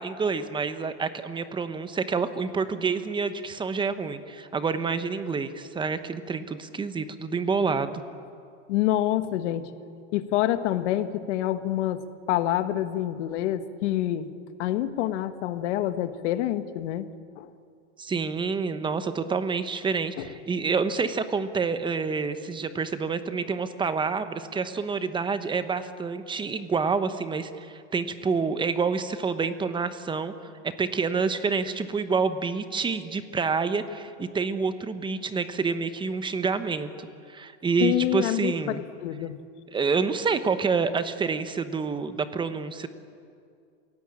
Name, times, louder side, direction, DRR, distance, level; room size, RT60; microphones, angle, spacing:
voice 1, 0.0-8.0 18.0-30.3 30.6-38.8 39.7-42.9, right 5 dB, 15° right, 11 dB, 1.0 m, -28 dB
voice 2, 8.7-9.7 10.1-14.3 14.6-17.1 17.4-17.5 20.2-20.3 37.8-39.4, left 13 dB, 70° left, 11 dB, 1.5 m, -27 dB
28.0 x 17.0 x 8.7 m, 2.4 s
supercardioid pair, 150°, 36 cm